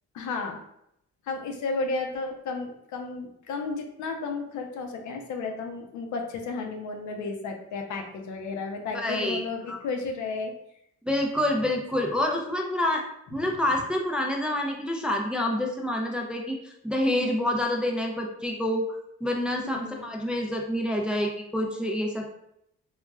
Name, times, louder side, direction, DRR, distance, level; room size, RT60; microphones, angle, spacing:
voice 1, 0.1-0.6 1.3-10.5 17.1-17.5 19.6-20.1, left 4 dB, 75° left, 3 dB, 0.6 m, -33 dB
voice 2, 8.9-9.8 11.1-13.0 13.3-22.3, left 1 dB, 5° right, 1 dB, 0.3 m, -27 dB
3.0 x 2.3 x 2.2 m, 0.78 s
cardioid pair, 90°, 30 cm